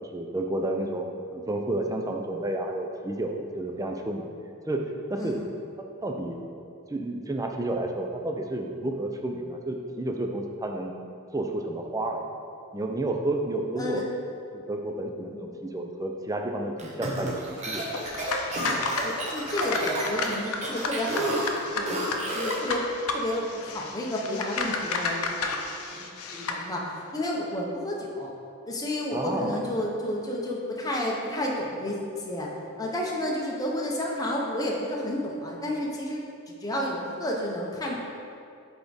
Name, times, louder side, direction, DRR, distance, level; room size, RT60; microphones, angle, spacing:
voice 1, 0.0-4.3 4.6-4.8 5.1-5.4 6.0-6.4 6.9-10.9 11.3-12.2 12.7-14.0 14.5-17.9 29.1-29.7, right 1 dB, 15° right, 2 dB, 0.4 m, -31 dB
sound 1, 16.8-22.7, right 1 dB, 30° right, 0.8 m, -31 dB
sound 2, 17.9-26.6, left 3 dB, 80° left, 0.6 m, -32 dB
voice 2, 19.0-21.3 21.7-25.6 25.9-26.8 27.1-28.3 28.7-32.5 32.8-38.0, left 1 dB, 15° left, -2 dB, 0.7 m, -31 dB
8.0 x 3.6 x 4.0 m, 2.5 s
head